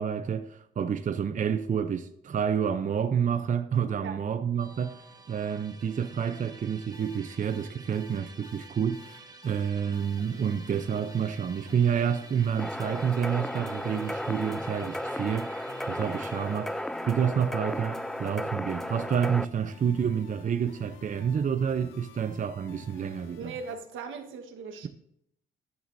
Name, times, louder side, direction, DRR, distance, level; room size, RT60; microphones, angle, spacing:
voice 1, 0.0-23.5, right 7 dB, 40° right, 0.7 m, -29 dB
Musical instrument, 4.6-19.8, right 3 dB, 20° right, 1.4 m, -51 dB
sound 1, 6.9-23.8, left 8 dB, 80° left, 0.8 m, -51 dB
sound 2, 12.6-19.4, left 1 dB, ahead, 0.3 m, -35 dB
voice 2, 23.4-24.9, right 5 dB, 80° right, 1.4 m, -39 dB
13.5 x 11.0 x 2.7 m
cardioid pair, 90°, 20 cm